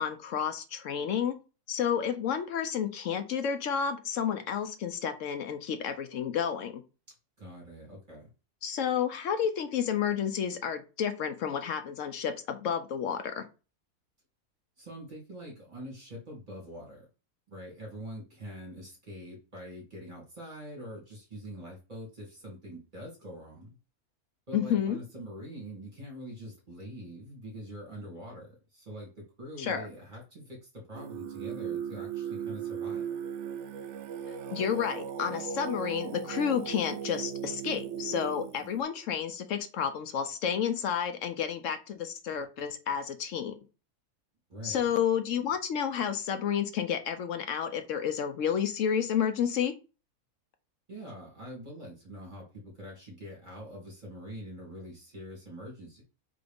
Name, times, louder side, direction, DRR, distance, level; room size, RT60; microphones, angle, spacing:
voice 1, 0.0-1.3 1.7-6.7 8.6-13.4 24.5-25.0 29.6-29.9 34.3-43.6 44.6-49.7, left 8 dB, 65° left, 8 dB, 0.8 m, -31 dB
voice 2, 7.4-8.3 14.8-17.1 17.5-23.8 24.5-33.1 44.5-44.9 50.9-56.0, equal, 30° right, -2 dB, 2.4 m, -44 dB
Singing, 30.9-38.8, right 8 dB, 65° right, 0.7 m, -37 dB
3.8 x 3.8 x 3.5 m, 0.32 s
omnidirectional pair, 1.6 m